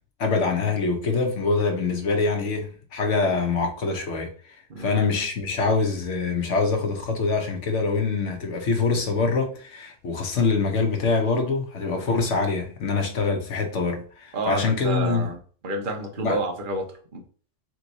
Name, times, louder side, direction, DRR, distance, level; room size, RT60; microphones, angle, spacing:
voice 1, 0.2-4.3 4.8-15.3 16.2-16.4, left 4 dB, 75° left, 1.3 m, -24 dB
voice 2, 4.7-5.1 14.3-15.4 15.6-16.9 17.1-17.2, right 2 dB, 45° right, 1.0 m, -29 dB
3.5 x 3.2 x 4.0 m
omnidirectional pair, 1.2 m